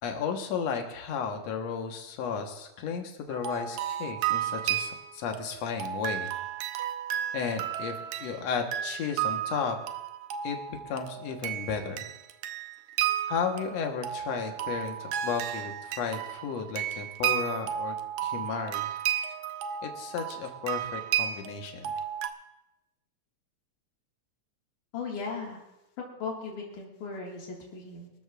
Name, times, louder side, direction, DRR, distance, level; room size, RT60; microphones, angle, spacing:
voice 1, 0.0-6.3 7.3-9.8 10.4-12.1 13.3-18.0 18.2-18.9 19.8-21.9, left 6 dB, 65° left, 3 dB, 2.4 m, -34 dB
sound 1, 3.3-22.3, right 10 dB, 80° right, 2.1 m, -33 dB
voice 2, 24.9-25.6 26.2-28.1, left 4 dB, 85° left, -2 dB, 3.6 m, -37 dB
24.0 x 13.5 x 2.5 m, 0.93 s
omnidirectional pair, 3.5 m